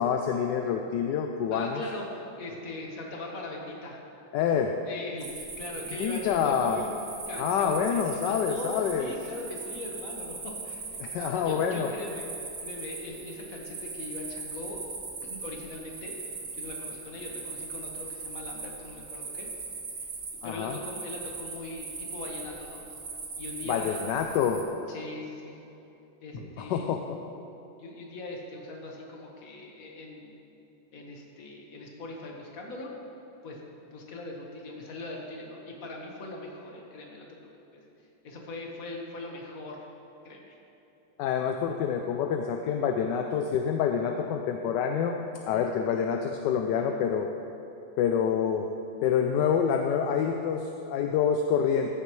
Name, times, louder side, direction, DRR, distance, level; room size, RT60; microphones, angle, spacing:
voice 1, 0.0-1.8 4.3-4.7 6.0-6.8 7.4-9.1 11.0-11.9 20.4-20.8 23.7-24.6 26.7-27.2 41.2-45.2 45.5-47.3 48.0-48.7 49.0-51.9, left 7 dB, 75° left, 4 dB, 1.1 m, -27 dB
voice 2, 1.5-4.0 4.4-6.9 7.3-10.8 11.1-12.3 12.6-14.8 15.2-16.1 16.5-19.5 20.0-20.1 20.4-22.8 23.4-24.1 24.9-25.6 26.2-27.0 27.8-30.3 30.9-32.9 33.4-37.4 37.7-37.8 38.2-39.8 40.2-40.6, left 2 dB, 45° left, 0 dB, 1.6 m, -40 dB
sound 1, 5.2-24.6, right 4 dB, 50° right, 1.6 m, -40 dB
15.0 x 10.0 x 3.1 m, 2.9 s
omnidirectional pair, 2.2 m